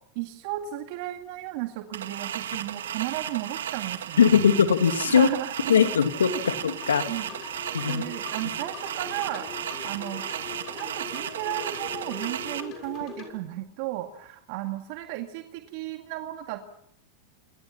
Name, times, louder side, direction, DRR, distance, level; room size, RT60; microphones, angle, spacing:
voice 1, 0.2-4.4 5.0-5.7 7.1-7.3 7.9-9.5 9.8-10.2 10.7-16.6, right 15 dB, 60° right, 6 dB, 2.1 m, -34 dB
sound 1, 1.9-12.6, right 10 dB, 80° right, 1.9 m, -34 dB
voice 2, 4.2-5.3 5.7-7.0 7.7-8.0, left 7 dB, 90° left, 8 dB, 2.6 m, -20 dB
sound 2, 5.6-13.3, left 7 dB, 45° left, 7.0 m, -42 dB
28.5 x 27.0 x 5.8 m, 0.73 s
hypercardioid pair, 105°, 0 cm